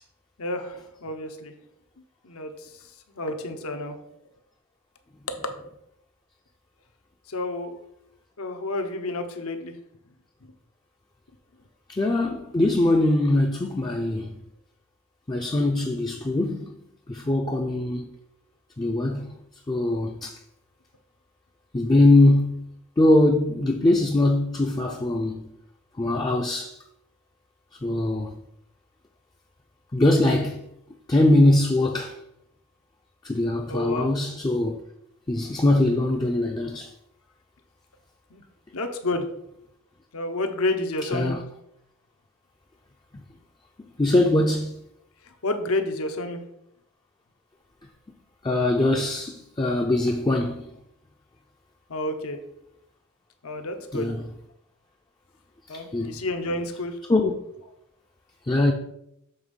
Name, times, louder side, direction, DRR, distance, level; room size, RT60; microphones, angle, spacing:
voice 1, 0.4-1.5 2.2-2.7 3.1-4.0 7.3-7.8 8.4-9.7 33.7-34.1 38.3-38.4 38.7-39.3 40.1-41.4 45.4-46.4 51.9-52.4 53.4-54.1 55.7-57.0, left 2 dB, 75° left, 0.9 m, -30 dB
voice 2, 11.9-14.3 15.3-16.7 17.1-18.1 18.8-19.3 19.7-20.3 21.7-22.6 23.0-25.5 26.0-26.8 27.8-28.3 29.9-30.7 31.1-32.1 33.2-34.8 35.3-36.9 41.1-41.4 44.0-44.7 48.4-50.6 53.9-54.3 55.7-56.2 57.1-57.3 58.5-58.7, left 1 dB, 20° left, 0.4 m, -22 dB
7.2 x 3.5 x 5.3 m
head